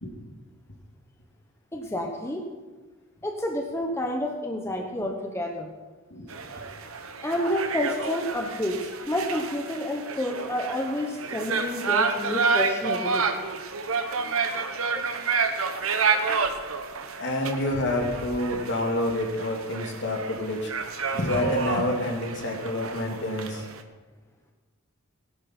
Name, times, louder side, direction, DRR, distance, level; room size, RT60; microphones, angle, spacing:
voice 1, 1.7-2.4 3.2-5.7 7.2-13.3 14.9-15.0, left 1 dB, 10° left, 1 dB, 1.0 m, -29 dB
sound 1, 6.3-23.8, right 5 dB, 75° right, 1.1 m, -30 dB
voice 2, 17.2-20.7 21.1-23.7, left 1 dB, 55° left, 1 dB, 2.4 m, -28 dB
17.5 x 11.5 x 4.4 m, 1.3 s
head